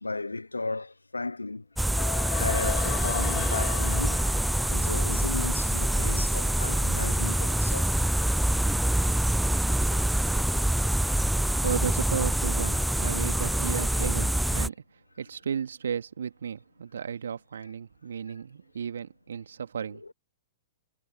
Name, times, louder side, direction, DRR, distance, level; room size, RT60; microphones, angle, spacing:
voice 1, 0.0-1.6 2.4-4.2 4.7-8.1 10.3-10.6 11.1-11.2 20.0-20.1, left 3 dB, 90° left, 0.6 m, -35 dB
sound 1, 1.8-6.4, left 18 dB, 35° left, 3.2 m, -37 dB
sound 2, 1.8-14.7, right 1 dB, 5° right, 0.5 m, -25 dB
voice 2, 11.4-20.0, right 7 dB, 70° right, 2.2 m, -34 dB
figure-of-eight pair, 110°, 0 cm